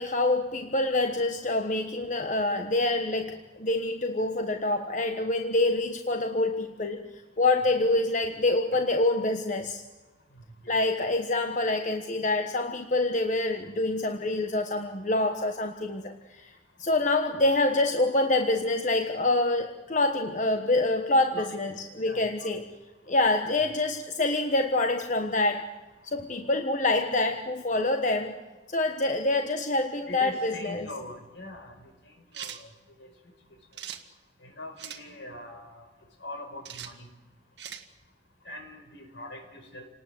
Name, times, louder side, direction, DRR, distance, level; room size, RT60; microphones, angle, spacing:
voice 1, 0.0-7.1 7.4-9.8 10.7-16.5 16.8-22.6 23.1-25.7 26.0-28.4 28.7-30.9, left 2 dB, 45° left, 5 dB, 1.3 m, -26 dB
voice 2, 10.3-10.7 21.3-21.6 22.0-22.6 30.1-31.9 32.3-32.7 33.0-33.1 34.4-35.8 36.2-37.1 38.4-39.9, left 1 dB, 75° left, 4 dB, 5.1 m, -42 dB
sound 1, 32.3-32.6 33.7-34.0 34.8-35.0 36.6-36.9 37.6-37.9, right 9 dB, 70° right, 1.8 m, -40 dB
29.0 x 19.0 x 7.8 m, 1.2 s
head